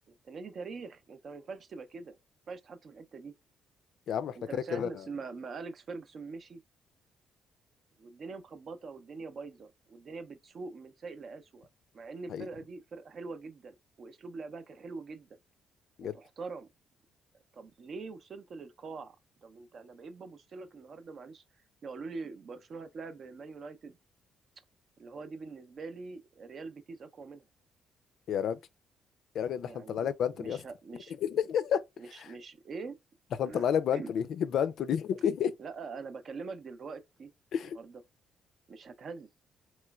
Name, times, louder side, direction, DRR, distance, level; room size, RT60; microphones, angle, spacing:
voice 1, 0.1-2.2 2.5-3.3 4.3-6.6 8.0-11.7 11.9-15.3 16.0-16.7 17.5-19.2 19.4-21.4 21.8-24.0 25.0-27.4 29.6-30.1 30.3-31.2 32.0-33.0 33.5-33.6 33.9-34.1 35.6-37.3 37.6-38.0 38.7-39.3, right 4 dB, 50° right, 0.5 m, -43 dB
voice 2, 4.7-5.0 12.3-12.5 16.0-16.2 28.3-28.6 29.3-30.6 31.2-31.8 32.2-32.3 33.4-35.6 37.5-37.8, left 8 dB, 70° left, 0.3 m, -30 dB
3.0 x 3.0 x 2.3 m
cardioid pair, 90°, 0 cm